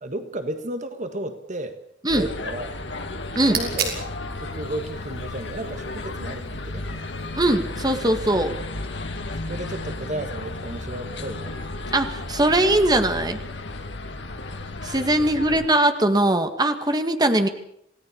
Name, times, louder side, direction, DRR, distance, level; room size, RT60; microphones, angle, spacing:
voice 1, 0.0-1.8 2.1-2.8 3.5-3.9 4.4-7.0 9.5-11.6 15.2-15.6, right 1 dB, 40° right, 8 dB, 1.7 m, -33 dB
sound 1, 2.1-15.7, left 2 dB, 70° left, 2.6 m, -33 dB
sound 2, 3.1-8.3, right 6 dB, 60° right, 6.2 m, -36 dB
voice 2, 7.4-8.5 11.9-13.4 14.8-17.5, right 1 dB, 20° right, 8 dB, 1.9 m, -20 dB
27.5 x 18.0 x 7.2 m, 0.72 s
head